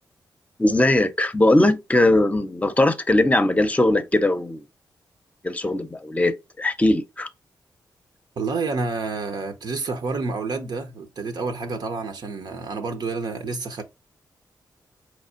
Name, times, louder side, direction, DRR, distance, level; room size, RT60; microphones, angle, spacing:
voice 1, 0.6-4.6 5.4-7.3, left 1 dB, 20° left, 0.7 m, -20 dB
voice 2, 8.4-13.8, right 4 dB, 70° right, 0.8 m, -29 dB
4.2 x 3.2 x 2.5 m
cardioid pair, 70°, 8 cm